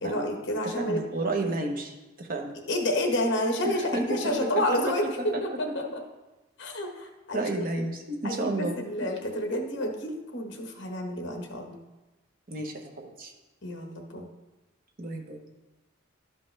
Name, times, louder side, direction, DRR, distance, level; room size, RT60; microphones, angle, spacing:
voice 1, 0.0-1.0 2.7-5.0 5.4-6.0 6.6-7.5 8.2-11.8 13.6-14.3, left 1 dB, 55° left, 3 dB, 1.2 m, -29 dB
voice 2, 0.6-2.5 3.6-4.6 5.3-5.6 7.3-8.8 12.5-13.3 15.0-15.4, right 2 dB, 40° right, 2 dB, 0.9 m, -32 dB
12.0 x 5.3 x 3.3 m, 1.1 s
head